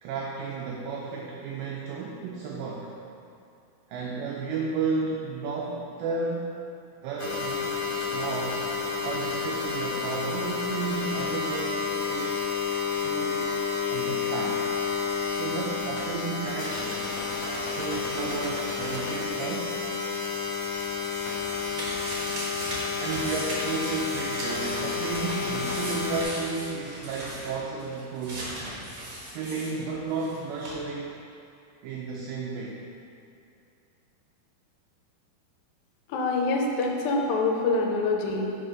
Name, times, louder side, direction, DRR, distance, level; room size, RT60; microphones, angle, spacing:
voice 1, 0.0-2.9 3.9-6.5 7.0-8.6 9.0-12.5 13.0-13.6 13.9-14.7 15.3-17.0 17.8-19.8 23.0-28.7 29.3-31.2 31.8-32.8, right 4 dB, 90° right, -2 dB, 1.9 m, -33 dB
sound 1, 7.2-26.2, left 5 dB, 55° left, 1.4 m, -30 dB
sound 2, 20.8-30.4 30.6-30.7, right 1 dB, 65° right, 1.2 m, -38 dB
voice 2, 36.1-38.6, left 3 dB, 80° left, 0 dB, 2.2 m, -25 dB
6.4 x 4.8 x 5.0 m, 2.6 s
omnidirectional pair, 4.6 m